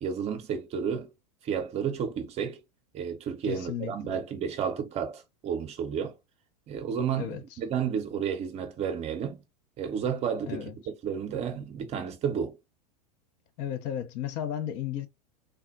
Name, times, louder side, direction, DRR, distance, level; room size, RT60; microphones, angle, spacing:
voice 1, 0.0-1.1 1.4-2.6 2.9-6.2 6.7-9.4 9.8-10.7 11.0-12.6, right 7 dB, 30° right, 0.7 m, -31 dB
voice 2, 3.4-4.2 7.1-7.6 10.5-10.8 13.6-15.1, left 10 dB, 45° left, 0.6 m, -34 dB
3.5 x 2.1 x 2.5 m
figure-of-eight pair, 90°, 21 cm